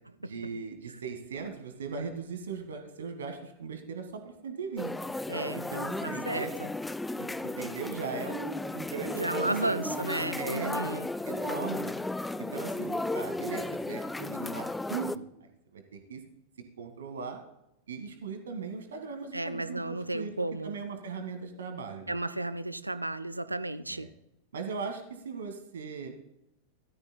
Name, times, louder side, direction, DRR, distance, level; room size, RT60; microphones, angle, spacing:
voice 1, 0.2-4.9 5.5-6.5 7.2-10.0 10.3-11.9 12.4-15.3 15.7-16.2 16.8-17.4 17.9-20.3 20.6-22.1 23.9-24.1 24.5-26.2, right 5 dB, 65° right, 6 dB, 1.7 m, -38 dB
sound 1, 4.8-15.2, left 2 dB, 5° left, 0.4 m, -35 dB
voice 2, 5.3-5.6 6.0-6.7 9.1-11.1 19.3-20.8 22.1-24.1, right 2 dB, 85° right, 15 dB, 0.5 m, -33 dB
16.5 x 13.0 x 2.2 m, 0.84 s
figure-of-eight pair, 90°, 0 cm